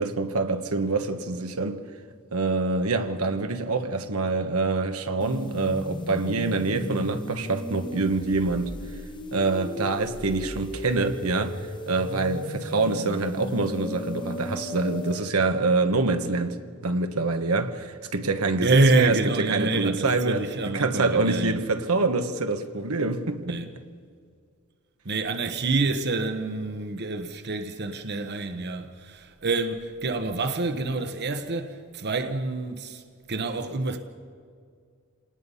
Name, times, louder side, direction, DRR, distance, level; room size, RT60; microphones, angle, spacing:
voice 1, 0.0-1.8 2.3-8.8 9.3-20.4 20.7-23.6, right 3 dB, 75° right, 1.2 m, -26 dB
sound 1, 5.2-15.2, left 1 dB, 20° left, 1.2 m, -36 dB
voice 2, 18.6-21.6 23.4-23.7 25.0-33.0 33.3-34.0, right 2 dB, 50° right, 1.0 m, -27 dB
27.0 x 19.5 x 5.6 m
head